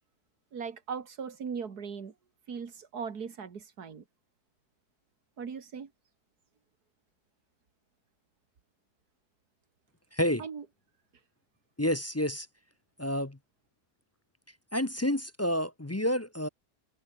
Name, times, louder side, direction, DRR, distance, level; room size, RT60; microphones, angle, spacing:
voice 1, 0.5-2.1 2.5-4.0 5.4-5.9 10.4-10.6, right 6 dB, 70° right, 2.5 m, -39 dB
voice 2, 10.1-10.4 11.8-12.5 13.0-13.4 14.7-16.5, left 1 dB, 15° left, 0.6 m, -29 dB
omnidirectional pair, 1.7 m